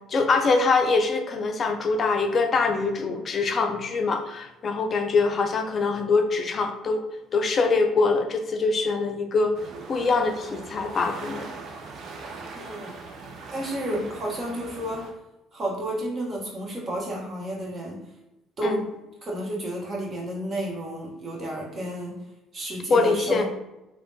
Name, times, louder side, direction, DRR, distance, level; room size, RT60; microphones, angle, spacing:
voice 1, 0.0-7.0 7.3-9.6 9.9-11.5 13.9-14.1 18.6-18.8 22.9-23.4, left 4 dB, 45° left, 5 dB, 0.4 m, -23 dB
sound 1, 9.5-15.1, right 4 dB, 55° right, 0.5 m, -41 dB
voice 2, 12.5-12.9 13.5-15.1 15.5-18.0 18.6-18.9 19.2-22.2 22.5-23.4, right 1 dB, 40° right, -2 dB, 1.1 m, -31 dB
3.2 x 2.2 x 2.7 m, 0.95 s
hypercardioid pair, 60°, 0 cm